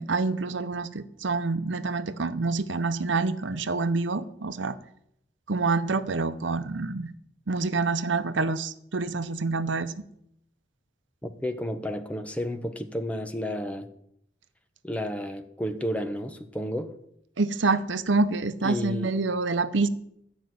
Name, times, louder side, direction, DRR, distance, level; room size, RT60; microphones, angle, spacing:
voice 1, 0.0-4.8 5.5-7.1 7.5-9.9 17.4-19.9, right 3 dB, 80° right, 12 dB, 0.8 m, -27 dB
voice 2, 11.2-13.9 14.8-16.9 18.6-19.1, equal, 5° left, 7 dB, 0.8 m, -32 dB
12.5 x 6.1 x 9.4 m, 0.73 s
head